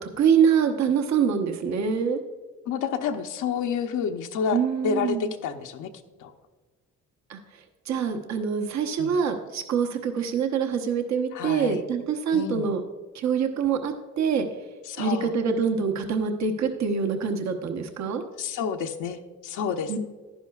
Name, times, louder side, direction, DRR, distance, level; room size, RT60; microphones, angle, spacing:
voice 1, 0.0-2.2 4.5-5.3 7.3-7.4 7.9-12.8 13.1-14.5 15.0-18.2 19.9-20.0, right 6 dB, 65° right, 5 dB, 1.0 m, -25 dB
voice 2, 2.6-4.6 4.8-5.9 6.2-6.3 9.0-9.1 11.3-11.8 12.3-12.7 14.8-15.3 18.4-20.0, left 7 dB, 80° left, 5 dB, 0.8 m, -29 dB
11.0 x 10.0 x 2.4 m, 1.3 s
cardioid pair, 90°, 30 cm